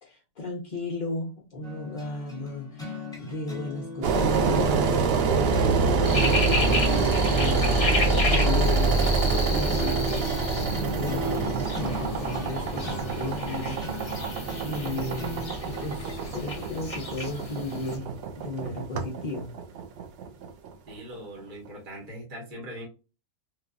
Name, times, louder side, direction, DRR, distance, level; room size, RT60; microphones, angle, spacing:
voice 1, 0.0-14.2 14.6-19.5, left 2 dB, 55° left, -1 dB, 0.5 m, -35 dB
sound 1, 1.6-16.3, left 2 dB, 5° left, 1.0 m, -40 dB
Engine, 4.0-20.9, right 4 dB, 75° right, 0.5 m, -26 dB
sound 2, 6.0-18.0, left 2 dB, 25° left, 0.9 m, -33 dB
voice 2, 20.9-22.9, equal, 35° right, -2 dB, 1.1 m, -40 dB
3.2 x 2.3 x 2.4 m, 0.30 s
omnidirectional pair, 1.6 m